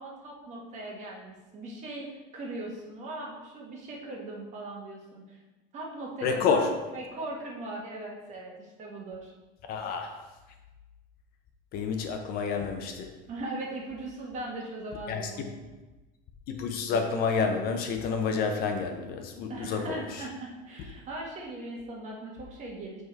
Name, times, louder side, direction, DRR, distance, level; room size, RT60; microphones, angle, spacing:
voice 1, 0.0-5.4 5.7-6.7 6.9-9.3 13.3-15.6 19.5-23.0, right 2 dB, 35° right, -2 dB, 1.5 m, -39 dB
voice 2, 6.2-6.7 9.7-10.1 11.7-13.1 15.1-15.5 16.5-20.2, left 5 dB, 45° left, 4 dB, 0.7 m, -29 dB
8.0 x 3.7 x 4.6 m, 1.1 s
cardioid pair, 170°, 21 cm